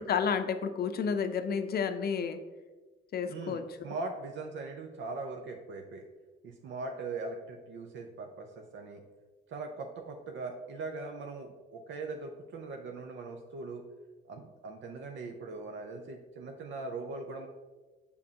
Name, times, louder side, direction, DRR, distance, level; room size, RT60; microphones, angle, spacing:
voice 1, 0.0-2.4 3.1-3.9, left 6 dB, 50° left, 9 dB, 0.5 m, -31 dB
voice 2, 3.3-6.1 6.4-9.0 9.5-13.8 14.3-17.5, right 3 dB, 70° right, 4 dB, 0.6 m, -40 dB
6.5 x 5.2 x 2.8 m, 1.3 s
cardioid pair, 90°, 20 cm